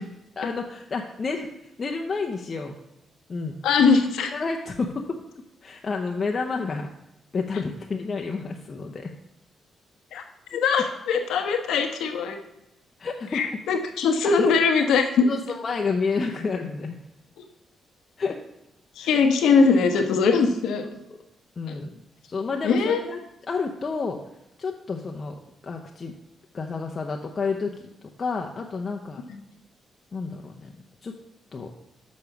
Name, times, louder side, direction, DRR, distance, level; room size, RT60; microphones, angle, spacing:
voice 1, 0.4-1.5 1.8-2.8 3.3-3.6 4.3-5.2 5.6-6.9 7.3-9.1 10.5-10.6 13.0-13.6 14.2-14.5 15.3-17.0 18.2-18.4 19.0-19.2 20.8-21.2 21.6-23.2 23.5-24.2 24.6-26.1 26.5-27.8 28.2-29.2 30.1-30.7 31.0-31.1 31.5-31.7, left 4 dB, 45° left, 1 dB, 0.8 m, -30 dB
voice 2, 3.6-4.3 10.1-10.2 10.5-12.4 13.3-15.3 19.0-20.8 22.6-23.0, left 5 dB, 85° left, 5 dB, 1.0 m, -21 dB
6.9 x 5.3 x 5.8 m, 0.88 s
cardioid pair, 65°, 0 cm